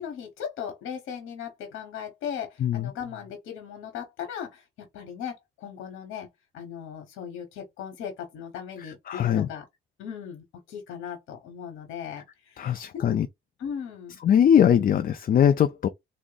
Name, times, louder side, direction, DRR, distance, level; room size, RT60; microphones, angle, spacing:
voice 1, 0.0-6.3 6.5-9.6 10.0-13.2 13.6-14.2, left 8 dB, 85° left, 1.0 m, -38 dB
voice 2, 9.1-9.5 12.6-13.3 14.2-15.9, left 9 dB, 45° left, 0.4 m, -21 dB
3.5 x 2.1 x 3.8 m
cardioid pair, 90°, 20 cm